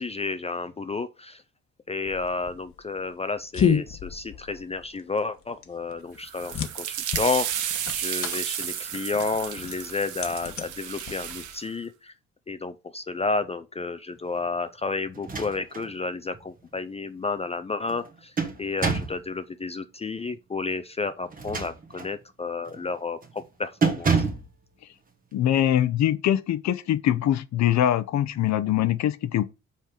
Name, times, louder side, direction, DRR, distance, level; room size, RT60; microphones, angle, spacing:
voice 1, 0.0-1.4 1.9-12.1 12.5-18.3 18.6-24.2, left 3 dB, 20° left, 0.4 m, -31 dB
sound 1, 2.0-11.6, left 7 dB, 45° left, 1.1 m, -32 dB
sound 2, 6.2-11.6, right 10 dB, 80° right, 1.0 m, -32 dB
sound 3, 15.1-15.9 16.3-16.4 17.9-19.2 21.3-22.2 22.7-22.9 23.2-23.4 23.8-24.5, right 5 dB, 30° right, 1.2 m, -27 dB
voice 2, 25.3-29.5, left 11 dB, 65° left, 0.7 m, -23 dB
5.8 x 4.4 x 4.9 m
cardioid pair, 130°, 30 cm